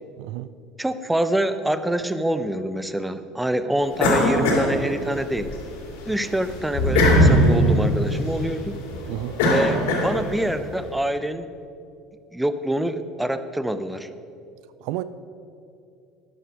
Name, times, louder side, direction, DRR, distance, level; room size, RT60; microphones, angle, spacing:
voice 1, 0.2-0.5 9.1-9.4 14.8-15.0, right 17 dB, 65° right, 14 dB, 0.4 m, -30 dB
voice 2, 0.8-5.6 6.1-8.8 9.5-11.5 12.3-14.1, right 1 dB, 5° right, 11 dB, 0.8 m, -26 dB
sound 1, 4.0-5.5 5.9-10.5, left 1 dB, 75° left, 2.7 m, -20 dB
13.0 x 10.5 x 5.2 m, 2.6 s
hypercardioid pair, 70°, 0 cm